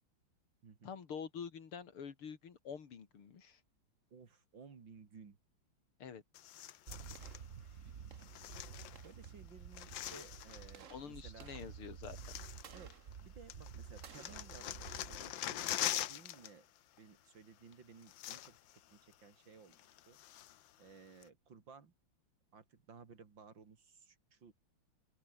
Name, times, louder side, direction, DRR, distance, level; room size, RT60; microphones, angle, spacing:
voice 1, 0.8-3.6 6.0-6.2 10.9-12.3, left 6 dB, 90° left, 3.3 m, -47 dB
voice 2, 4.1-5.4 7.6-8.1 9.0-11.5 12.7-12.9 13.2-14.8 15.1-16.6 17.0-18.6 18.9-19.8 20.1-20.2 20.8-21.9 22.5-24.5, right 5 dB, 60° right, 3.2 m, -57 dB
sound 1, 6.3-7.4 8.2-9.3 9.5-10.8 11.6-11.7 12.0-13.2 13.5-16.5 16.8-17.0 17.7-17.8 18.0-18.8 19.1-19.2 19.7-20.7 21.2-21.3, left 12 dB, 65° left, 1.5 m, -43 dB
sound 2, 6.9-16.0, right 7 dB, 45° right, 1.3 m, -51 dB
open air
omnidirectional pair, 2.3 m